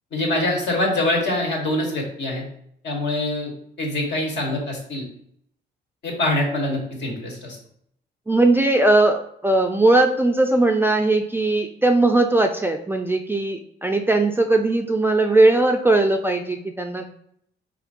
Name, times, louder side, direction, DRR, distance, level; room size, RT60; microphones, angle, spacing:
voice 1, 0.1-2.4 2.8-3.5 3.8-5.0 6.0-7.6, left 1 dB, 65° left, 0 dB, 1.2 m, -24 dB
voice 2, 8.3-17.1, right 2 dB, 10° right, 4 dB, 0.3 m, -19 dB
4.5 x 2.5 x 2.5 m, 0.69 s
cardioid pair, 90°, 20 cm